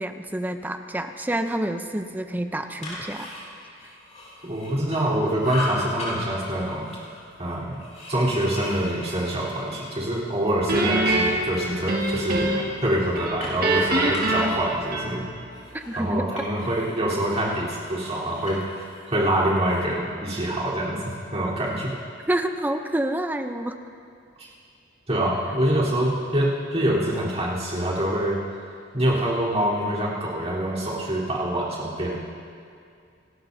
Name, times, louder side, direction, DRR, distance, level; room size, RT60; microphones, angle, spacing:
voice 1, 0.0-3.3 15.7-16.2 22.3-23.8, right 1 dB, 10° right, 7 dB, 0.6 m, -28 dB
sound 1, 2.6-5.1 5.4-6.1 6.5-10.1 10.4-11.5 12.0-17.0 17.3-19.9, left 2 dB, 40° left, 4.6 m, -39 dB
voice 2, 4.4-6.9 7.4-7.8 8.1-12.5 12.8-15.2 16.0-21.0 21.3-21.9 24.4-24.5 25.1-28.4 28.9-32.1, right 1 dB, 35° right, -7 dB, 3.7 m, -25 dB
Guitar, 10.7-12.8 13.1-15.5, right 2 dB, 50° right, 1.7 m, -24 dB
28.0 x 13.0 x 2.7 m, 2.4 s
head